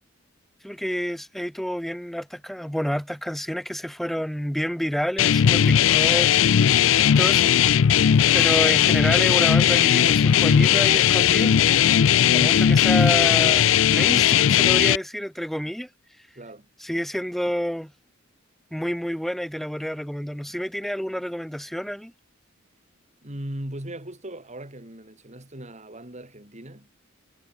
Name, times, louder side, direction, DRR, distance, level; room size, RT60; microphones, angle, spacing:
voice 1, 0.6-6.3 7.2-7.5 8.3-11.6 12.3-15.9 16.8-17.9 18.7-22.1, equal, ahead, 0.5 m, -29 dB
sound 1, 5.2-15.0, left 9 dB, 70° left, 0.4 m, -18 dB
voice 2, 16.4-16.7 23.2-26.9, right 1 dB, 35° right, 4.1 m, -38 dB
head